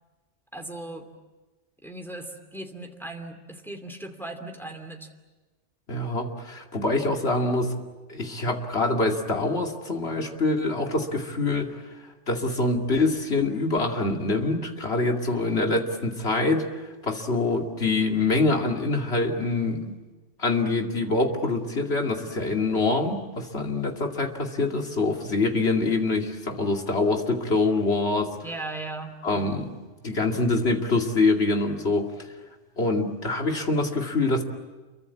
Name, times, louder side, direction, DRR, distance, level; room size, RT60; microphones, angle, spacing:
voice 1, 0.5-1.1 1.8-5.1 28.4-29.2, right 2 dB, ahead, 4 dB, 2.7 m, -37 dB
voice 2, 5.9-7.7 8.1-11.7 12.3-16.7 17.0-20.0 20.4-28.4 29.2-29.7 30.0-32.1 32.8-34.4, left 3 dB, 60° left, 2 dB, 2.8 m, -25 dB
29.0 x 23.5 x 8.6 m, 1.2 s
omnidirectional pair, 1.2 m